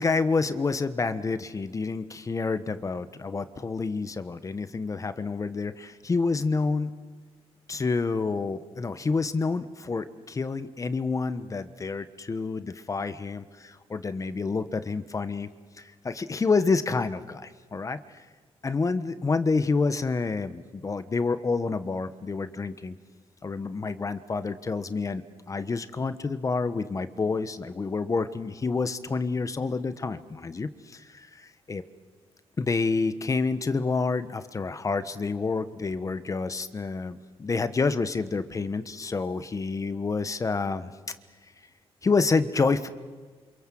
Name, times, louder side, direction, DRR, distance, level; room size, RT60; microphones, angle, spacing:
voice 1, 0.0-6.9 7.7-15.5 15.8-18.2 18.6-22.9 23.4-31.8 32.6-40.9 42.0-42.9, left 4 dB, 30° left, 12 dB, 1.2 m, -28 dB
28.5 x 27.0 x 7.7 m, 1.4 s
cardioid pair, 105°, 11 cm